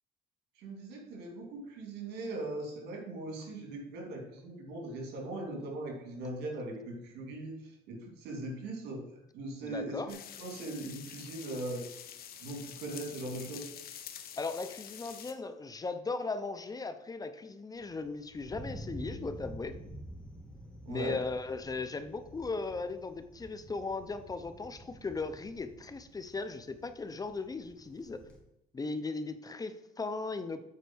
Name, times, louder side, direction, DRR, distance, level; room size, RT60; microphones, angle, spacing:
voice 1, 0.6-9.0 9.3-11.8 12.4-13.6 20.8-21.2, right 2 dB, 85° right, 2 dB, 2.7 m, -40 dB
voice 2, 9.6-10.1 14.4-19.8 20.9-28.2 28.7-30.7, left 3 dB, 20° left, 11 dB, 0.6 m, -37 dB
sound 1, 10.1-15.3, left 9 dB, 60° left, 1.1 m, -47 dB
Thunder, 17.8-28.4, right 1 dB, 5° left, 2.6 m, -49 dB
8.5 x 4.5 x 6.1 m, 0.86 s
cardioid pair, 110°, 17 cm